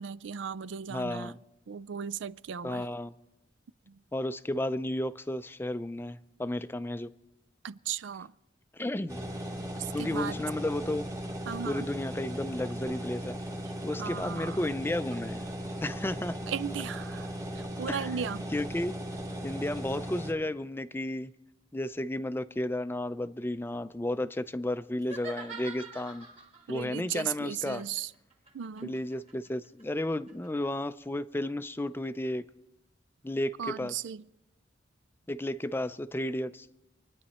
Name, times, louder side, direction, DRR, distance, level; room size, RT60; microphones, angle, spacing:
voice 1, 0.0-1.3 1.7-2.8 3.9-4.0 7.6-8.3 9.8-10.4 11.5-11.9 14.0-14.6 16.5-17.3 17.6-18.5 26.7-28.1 28.5-29.0 33.6-34.2, right 7 dB, 75° right, 0.4 m, -36 dB
voice 2, 0.9-1.4 2.6-3.1 4.1-7.1 8.7-9.2 9.9-11.1 11.7-13.4 13.8-15.4 15.8-16.4 17.9-18.1 18.5-19.0 19.4-21.3 21.7-26.3 26.7-27.8 28.8-32.4 33.2-33.9 35.3-36.7, left 1 dB, 10° left, 0.4 m, -33 dB
sound 1, 9.1-20.3, right 1 dB, 15° right, 1.1 m, -37 dB
sound 2, 25.0-26.7 27.6-30.7, right 4 dB, 35° right, 1.9 m, -46 dB
27.0 x 10.0 x 4.3 m
head